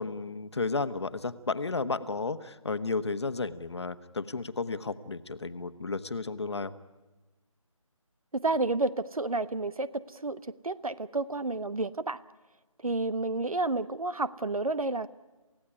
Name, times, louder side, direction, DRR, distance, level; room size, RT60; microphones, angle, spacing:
voice 1, 0.0-6.7, left 3 dB, 50° left, 11 dB, 1.2 m, -33 dB
voice 2, 8.3-12.2 12.8-15.1, right 2 dB, 85° right, 15 dB, 1.2 m, -30 dB
28.0 x 16.5 x 9.9 m, 1.2 s
figure-of-eight pair, 165°, 18 cm